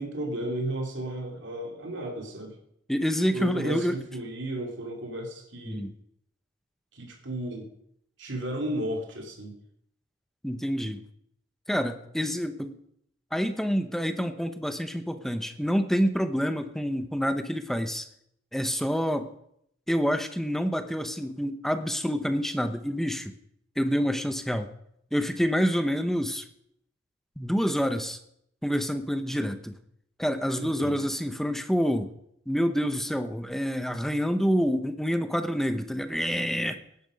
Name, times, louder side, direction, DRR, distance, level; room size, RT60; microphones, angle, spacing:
voice 1, 0.0-2.6 3.3-5.9 6.9-7.7 8.2-9.5 30.6-31.0, right 1 dB, 65° right, 2 dB, 3.0 m, -34 dB
voice 2, 2.9-4.0 5.7-5.9 10.4-11.0 11.7-12.7 13.3-18.1 18.5-19.3 19.9-23.3 23.8-24.7 25.1-26.5 27.4-28.2 28.6-29.7 30.2-32.1 32.5-36.8, equal, ahead, 9 dB, 0.8 m, -27 dB
17.0 x 10.5 x 5.2 m, 0.73 s
head